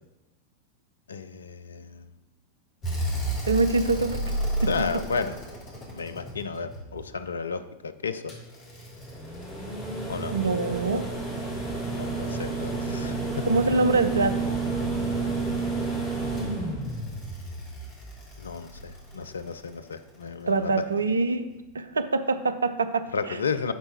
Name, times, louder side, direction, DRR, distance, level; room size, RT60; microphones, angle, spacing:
voice 1, 1.1-2.1 4.7-5.4 5.9-8.3 10.1-10.3 11.9-13.5 18.4-20.8 23.1-23.7, left 5 dB, 70° left, 11 dB, 0.5 m, -33 dB
sound 1, 2.8-7.0 8.3-19.5 21.0-21.1, right 2 dB, 30° left, 2.7 m, -31 dB
voice 2, 3.5-4.4 10.3-11.1 13.4-14.5 20.5-21.5 21.7-23.1, right 3 dB, 75° right, 11 dB, 0.4 m, -24 dB
10.0 x 4.4 x 4.4 m, 1.1 s
figure-of-eight pair, 90°, 0 cm